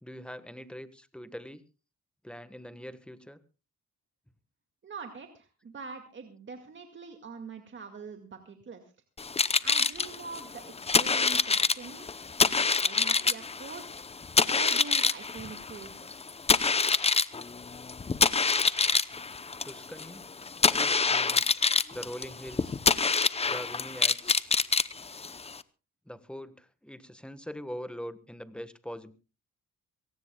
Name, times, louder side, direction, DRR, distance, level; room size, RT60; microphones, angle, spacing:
voice 1, 0.0-1.6 2.2-3.4 19.6-20.3 20.7-21.5 21.9-22.8 23.5-24.6 26.1-29.1, equal, 5° left, 12 dB, 1.4 m, -42 dB
voice 2, 4.8-8.8 9.6-12.1 12.4-14.0 14.4-16.3, right 5 dB, 40° right, 5 dB, 2.1 m, -44 dB
sound 1, 9.2-25.6, left 4 dB, 20° left, 0.7 m, -26 dB
24.0 x 17.5 x 2.3 m, 0.32 s
cardioid pair, 90°, 30 cm